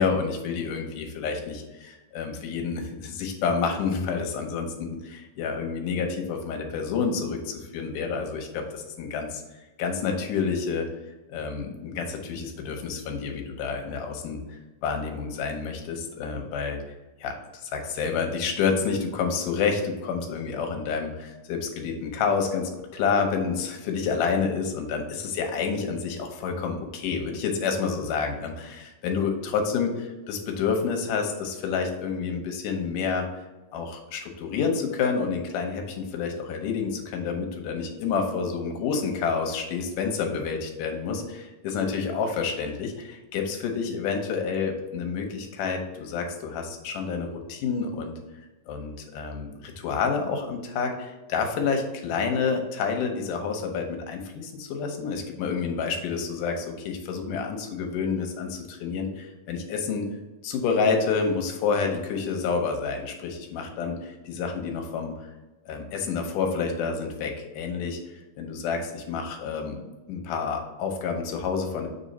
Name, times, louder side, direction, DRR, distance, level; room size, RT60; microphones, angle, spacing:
voice 1, 0.0-9.4 9.8-10.9 11.3-16.8 17.2-17.3 17.6-33.2 33.7-48.2 48.7-60.1 60.4-65.3 65.7-69.8 70.1-71.9, left 5 dB, 75° left, 3 dB, 2.0 m, -29 dB
7.5 x 3.5 x 4.0 m, 1.1 s
omnidirectional pair, 4.5 m